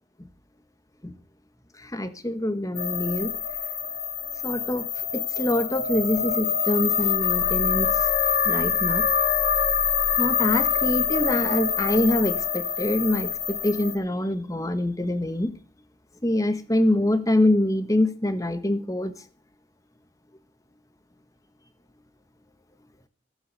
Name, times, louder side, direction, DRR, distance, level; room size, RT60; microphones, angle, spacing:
voice 1, 1.8-3.4 4.4-8.1 8.4-9.0 10.2-15.5 16.2-19.1, left 1 dB, 20° left, 11 dB, 1.2 m, -25 dB
sound 1, 2.7-13.9, left 7 dB, 55° left, 2.9 m, -25 dB
16.5 x 7.9 x 6.7 m, 0.40 s
head